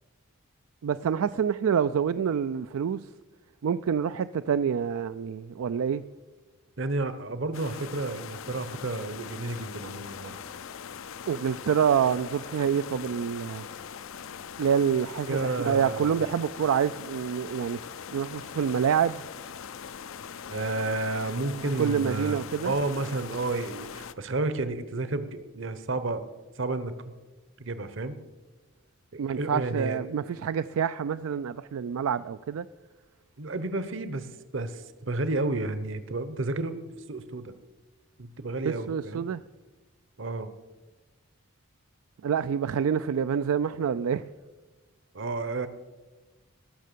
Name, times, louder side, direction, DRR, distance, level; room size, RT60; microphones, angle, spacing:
voice 1, 0.8-3.1 3.6-6.0 11.3-13.7 14.6-17.8 18.1-19.2 21.8-22.7 29.2-32.7 38.6-39.4 42.2-44.2, right 7 dB, 75° right, 0.3 m, -27 dB
voice 2, 6.8-10.4 15.2-16.2 20.5-26.2 26.6-27.1 27.6-28.2 29.1-30.0 33.4-36.7 37.1-37.5 38.2-39.3 40.2-40.5 45.1-45.7, right 2 dB, 60° right, 0.9 m, -31 dB
sound 1, 7.5-24.1, left 7 dB, 65° left, 0.5 m, -41 dB
19.0 x 6.5 x 6.8 m
head